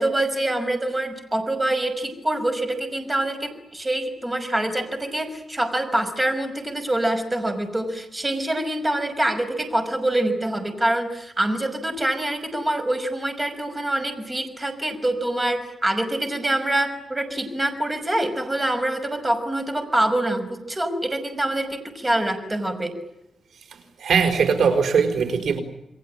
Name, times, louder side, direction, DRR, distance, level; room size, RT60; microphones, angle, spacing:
voice 1, 0.0-22.9, right 1 dB, 20° right, 7 dB, 5.8 m, -25 dB
voice 2, 24.0-25.6, right 6 dB, 80° right, 7 dB, 4.8 m, -20 dB
29.0 x 22.5 x 8.8 m, 0.87 s
wide cardioid pair, 135°, 0 cm